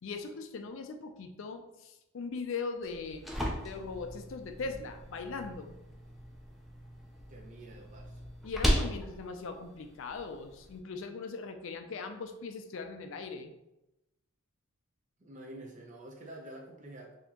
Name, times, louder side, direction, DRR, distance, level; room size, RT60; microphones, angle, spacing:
voice 1, 0.0-3.2 3.6-5.7 8.4-13.5, left 4 dB, 60° left, 6 dB, 0.4 m, -40 dB
sound 1, 2.8-10.8, equal, ahead, 0.4 m, -36 dB
voice 2, 7.3-8.2 15.2-17.2, right 1 dB, 35° right, 0 dB, 0.6 m, -48 dB
4.2 x 2.8 x 2.8 m, 0.92 s
head